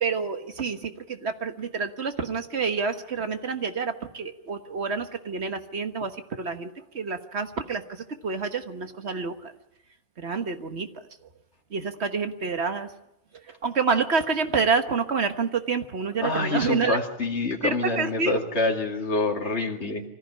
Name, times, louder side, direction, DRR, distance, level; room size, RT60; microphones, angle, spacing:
voice 1, 0.0-6.1 6.4-6.7 6.9-7.8 8.2-9.5 10.2-10.9 11.7-12.9 13.6-17.0 17.6-18.4, right 5 dB, 70° right, 7 dB, 1.7 m, -28 dB
voice 2, 16.2-20.0, left 3 dB, 75° left, 0 dB, 2.6 m, -27 dB
25.0 x 15.0 x 9.9 m, 0.86 s
omnidirectional pair, 1.2 m